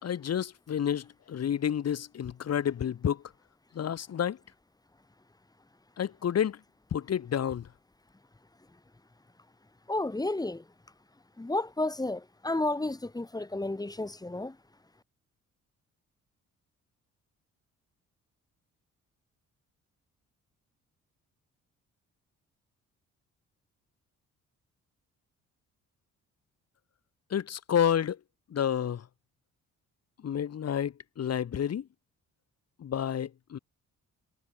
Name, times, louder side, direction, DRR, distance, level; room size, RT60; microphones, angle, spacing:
voice 1, 0.0-3.2 3.7-4.4 6.0-6.6 6.9-7.7 27.3-28.2 28.5-29.1 30.2-31.9 32.8-33.6, left 9 dB, 55° left, 2.8 m, -30 dB
voice 2, 9.9-10.6 11.4-14.6, left 2 dB, 15° left, 2.6 m, -32 dB
cardioid pair, 90°, 30 cm